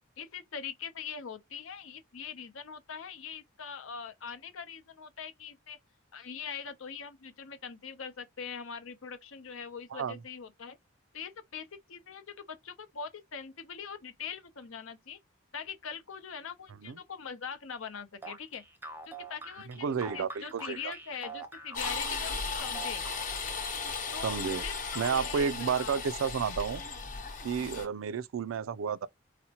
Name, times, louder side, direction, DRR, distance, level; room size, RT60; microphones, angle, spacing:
voice 1, 0.2-5.8 6.1-10.8 11.1-15.2 15.5-18.6 19.1-19.9 20.1-23.0 24.1-26.0 27.6-27.9, left 6 dB, 85° left, 0.7 m, -42 dB
sound 1, 18.2-23.5, right 3 dB, 10° right, 0.5 m, -45 dB
voice 2, 19.7-20.9 24.2-24.6 25.0-26.8 27.4-29.1, right 6 dB, 85° right, 0.4 m, -31 dB
sound 2, 21.7-27.9, left 4 dB, 40° left, 0.7 m, -36 dB
4.1 x 2.1 x 2.8 m
head